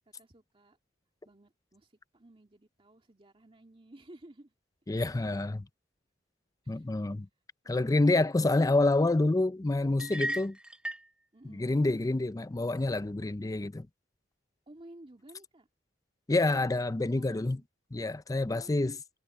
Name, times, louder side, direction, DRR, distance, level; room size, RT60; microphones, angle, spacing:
voice 1, 0.1-0.8 1.2-4.5 5.1-5.3 6.6-6.9 11.3-11.7 14.7-15.7 17.1-17.6 18.4-18.9, right 1 dB, 30° right, 2.3 m, -55 dB
voice 2, 4.9-5.7 6.7-7.3 7.7-10.6 11.5-13.9 16.3-17.6 17.9-19.0, left 2 dB, 20° left, 0.5 m, -27 dB
sound 1, 10.0-11.1, right 1 dB, 5° right, 0.9 m, -35 dB
head